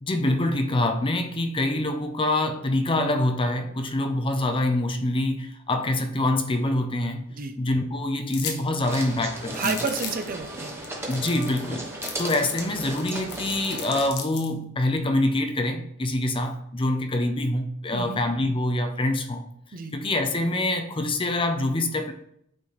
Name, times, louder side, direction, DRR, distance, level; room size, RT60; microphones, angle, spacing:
voice 1, 0.0-7.2 7.6-9.8 11.1-11.9 12.2-19.5 19.9-22.1, left 1 dB, 25° left, 6 dB, 0.5 m, -25 dB
sound 1, 8.3-8.6 8.9-9.0 9.5-10.3 10.8-10.9 11.1-11.7 12.0-14.5, left 7 dB, 85° left, 1.0 m, -35 dB
sound 2, 8.8-14.1, right 1 dB, 10° right, 1.1 m, -36 dB
voice 2, 9.5-10.9 11.2-11.3 17.9-18.2 19.7-19.9, right 5 dB, 40° right, 7 dB, 0.6 m, -31 dB
8.4 x 4.0 x 3.2 m, 0.72 s
head